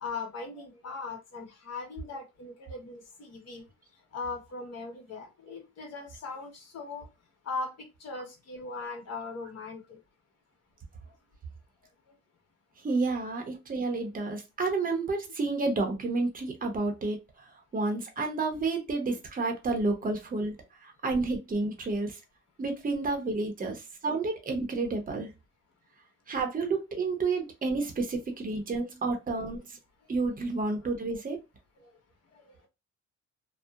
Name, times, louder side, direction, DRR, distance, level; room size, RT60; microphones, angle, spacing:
voice 1, 0.0-3.7 4.1-7.0 7.4-10.0 32.3-32.4, left 4 dB, 55° left, 1.2 m, -39 dB
voice 2, 12.8-17.2 17.7-20.5 20.8-22.2 22.6-25.3 26.3-29.6 30.1-31.4, right 3 dB, 30° right, 0.8 m, -30 dB
2.8 x 2.1 x 2.4 m
cardioid pair, 90°, 30 cm